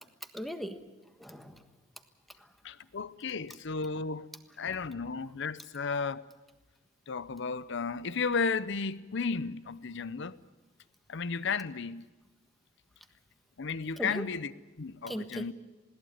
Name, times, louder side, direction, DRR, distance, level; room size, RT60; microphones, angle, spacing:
voice 1, 0.2-0.8 1.2-1.7 2.4-2.5 14.0-14.3 15.1-15.5, equal, ahead, 1.4 m, -39 dB
voice 2, 2.6-4.3 4.6-6.3 7.1-10.4 11.1-12.1 13.6-14.5 14.8-15.5, left 5 dB, 65° left, 0.7 m, -33 dB
20.5 x 17.5 x 9.5 m
head